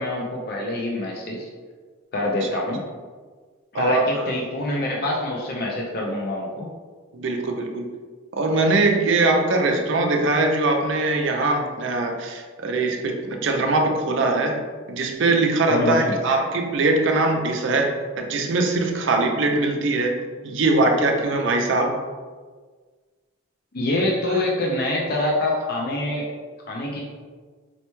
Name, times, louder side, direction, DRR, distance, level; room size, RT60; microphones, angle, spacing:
voice 1, 0.0-1.5 2.1-2.8 3.7-6.7 15.7-16.2 23.7-26.3 26.7-27.0, left 1 dB, 45° left, -2 dB, 0.4 m, -25 dB
voice 2, 3.7-4.3 7.1-7.9 8.3-14.6 14.9-20.2 20.4-22.0 24.3-24.4, right 2 dB, 60° right, 2 dB, 0.4 m, -22 dB
4.1 x 2.2 x 3.0 m, 1.5 s
head